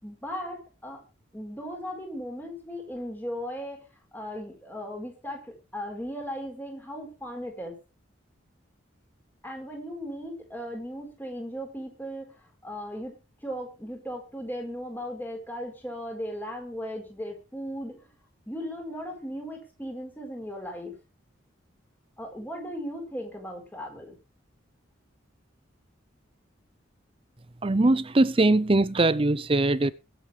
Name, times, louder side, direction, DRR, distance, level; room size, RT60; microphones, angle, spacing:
voice 1, 0.0-1.0 1.3-3.8 4.1-7.8 9.4-12.3 12.6-13.1 13.4-18.1 18.5-20.9 22.2-24.2, equal, 10° left, 4.5 m, -37 dB
voice 2, 27.6-29.9, right 2 dB, 25° right, 0.5 m, -21 dB
23.5 x 7.9 x 3.3 m
head